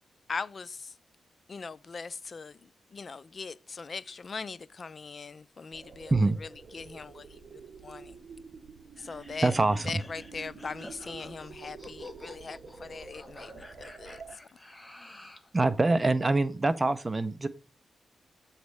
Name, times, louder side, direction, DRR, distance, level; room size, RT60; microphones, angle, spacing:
voice 1, 0.3-1.0 1.5-8.2 9.0-9.5 9.8-14.2, left 4 dB, 45° left, 0.4 m, -40 dB
sound 1, 5.7-14.4, right 5 dB, 55° right, 0.8 m, -48 dB
sound 2, 9.0-15.5, left 2 dB, 15° left, 0.9 m, -49 dB
voice 2, 9.4-9.9 15.5-17.5, right 2 dB, 25° right, 0.6 m, -25 dB
7.9 x 3.2 x 6.2 m
cardioid pair, 95°, 0 cm